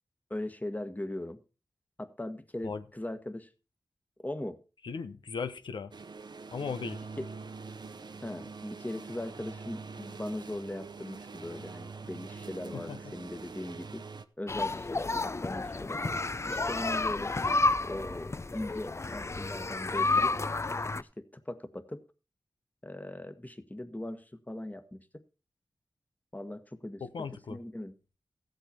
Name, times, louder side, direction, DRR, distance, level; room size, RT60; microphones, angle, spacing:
voice 1, 0.3-1.4 2.0-3.5 4.2-4.6 7.2-7.3 8.2-14.0 14.4-16.0 16.4-17.4 17.8-20.4 21.0-22.0 22.8-25.0 26.3-27.0 27.5-27.9, left 1 dB, 20° left, 1.5 m, -39 dB
voice 2, 4.8-5.9 6.5-7.0 12.7-13.1 27.0-27.6, left 5 dB, 85° left, 0.9 m, -37 dB
sound 1, 5.9-14.3, right 4 dB, 65° right, 0.8 m, -44 dB
sound 2, 14.5-21.0, left 3 dB, 35° left, 0.5 m, -31 dB
14.5 x 8.0 x 4.3 m
cardioid pair, 40°, 8 cm